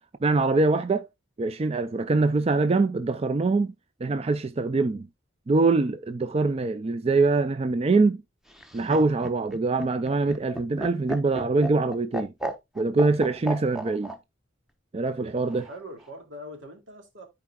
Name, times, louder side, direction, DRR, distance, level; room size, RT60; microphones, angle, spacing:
voice 1, 0.2-1.1 1.4-3.7 4.0-5.1 5.5-8.2 8.7-12.3 12.8-14.1 14.9-15.7, right 3 dB, 30° right, 0.4 m, -24 dB
Laughter, 8.5-14.2 15.5-16.1, right 1 dB, 5° right, 0.9 m, -34 dB
voice 2, 15.5-17.2, equal, 80° right, 2.5 m, -42 dB
13.0 x 4.7 x 2.3 m
head